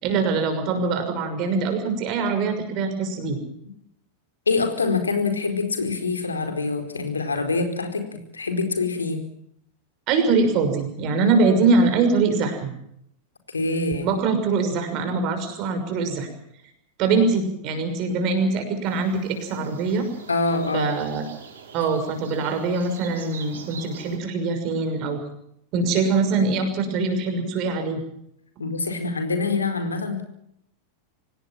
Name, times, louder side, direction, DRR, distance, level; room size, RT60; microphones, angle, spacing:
voice 1, 0.0-3.4 10.1-12.7 14.0-16.3 17.0-20.1 20.7-21.3 21.7-25.2 25.7-28.0, right 4 dB, 40° right, 7 dB, 6.2 m, -23 dB
voice 2, 4.5-9.2 13.5-14.1 20.3-20.9 26.2-26.5 28.6-30.2, left 3 dB, 75° left, 6 dB, 4.4 m, -25 dB
sound 1, 18.8-24.2, right 6 dB, 65° right, 5.5 m, -44 dB
25.5 x 18.5 x 7.4 m, 0.73 s
figure-of-eight pair, 90°, 0 cm